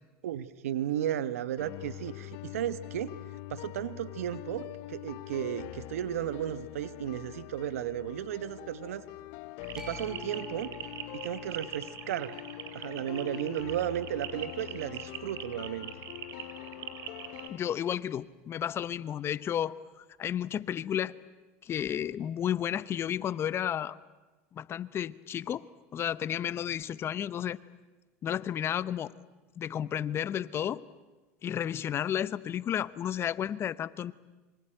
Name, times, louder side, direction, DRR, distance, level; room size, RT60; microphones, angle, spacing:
voice 1, 0.2-3.2 3.5-9.0 9.7-10.7 11.1-12.4 12.7-15.9, right 11 dB, 85° right, 15 dB, 1.2 m, -34 dB
sound 1, 1.6-17.6, left 17 dB, 60° left, 0.9 m, -44 dB
sound 2, 9.6-17.5, right 10 dB, 50° right, 3.1 m, -43 dB
sound 3, 9.8-16.0, right 1 dB, 10° right, 7.8 m, -52 dB
voice 2, 17.5-21.1 21.6-24.0 24.5-25.7 25.9-27.6 28.2-29.1 29.6-30.8 31.4-34.1, left 10 dB, 35° left, 18 dB, 1.0 m, -32 dB
26.5 x 25.0 x 8.9 m, 1.2 s
supercardioid pair, 110°, 7 cm